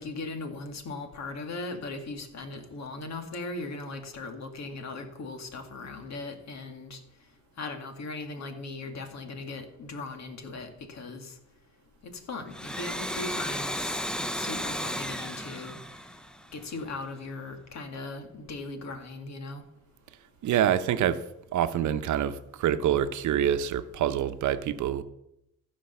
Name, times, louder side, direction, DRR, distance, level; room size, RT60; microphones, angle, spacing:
voice 1, 0.0-7.0 7.6-11.3 12.0-14.0 14.4-15.8 16.5-19.6, left 3 dB, 60° left, 6 dB, 2.2 m, -38 dB
Domestic sounds home sounds, 12.4-16.9, equal, 5° left, 0.7 m, -34 dB
voice 2, 20.4-21.2 21.5-25.0, right 10 dB, 75° right, 11 dB, 0.9 m, -26 dB
15.0 x 5.3 x 6.8 m, 0.82 s
cardioid pair, 90°, 30 cm